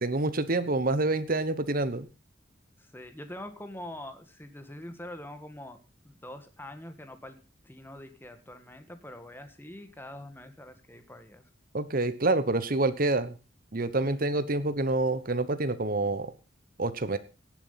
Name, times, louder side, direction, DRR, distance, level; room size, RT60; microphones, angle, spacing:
voice 1, 0.0-2.1 11.7-13.3 13.7-16.3 16.8-17.2, right 2 dB, 50° right, 12 dB, 1.1 m, -27 dB
voice 2, 2.8-5.8 6.0-7.4 7.6-11.5 14.0-14.3, left 1 dB, 10° left, 8 dB, 1.7 m, -44 dB
18.0 x 7.4 x 5.7 m, 0.33 s
head